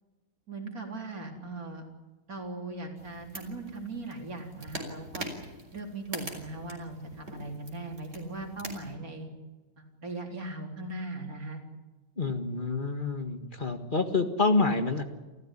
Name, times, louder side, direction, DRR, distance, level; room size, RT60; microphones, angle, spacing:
voice 1, 0.5-1.9 2.3-5.3 5.7-9.3 9.8-11.6, right 2 dB, 80° right, 2 dB, 4.3 m, -39 dB
sound 1, 3.0-8.9, right 1 dB, 55° right, 4.7 m, -43 dB
voice 2, 12.2-15.0, left 3 dB, 35° left, 7 dB, 1.9 m, -27 dB
28.5 x 15.0 x 10.0 m, 1.2 s
omnidirectional pair, 1.5 m